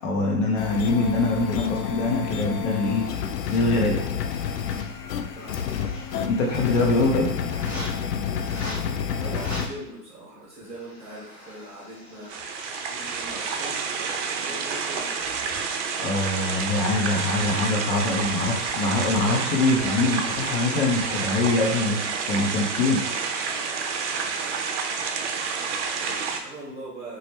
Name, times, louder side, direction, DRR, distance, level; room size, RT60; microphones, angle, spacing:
voice 1, 0.0-3.0 3.5-4.1 6.2-7.3 16.0-22.0 22.3-23.0, left 2 dB, 50° left, -1 dB, 0.9 m, -23 dB
sound 1, 0.6-9.7, left 7 dB, 75° left, 0.6 m, -29 dB
sound 2, 2.9-3.6 4.0-4.9 5.2-7.0 7.5-7.9 8.4-8.8 9.2-9.6 10.4-13.4 14.0-15.7 16.3-17.1 17.4-17.6 18.2-18.8 19.2-19.5 19.8-20.0 20.3-20.6 21.0-21.5, equal, 15° left, 1.2 m, -43 dB
voice 2, 5.3-6.0 8.3-14.0 14.3-15.2 16.3-17.6 24.2-24.6 25.3-27.2, right 1 dB, 15° right, -6 dB, 1.0 m, -42 dB
sound 3, 12.3-26.4, right 5 dB, 50° right, 0.5 m, -29 dB
2.9 x 2.4 x 3.2 m, 0.80 s
hypercardioid pair, 110°, 49 cm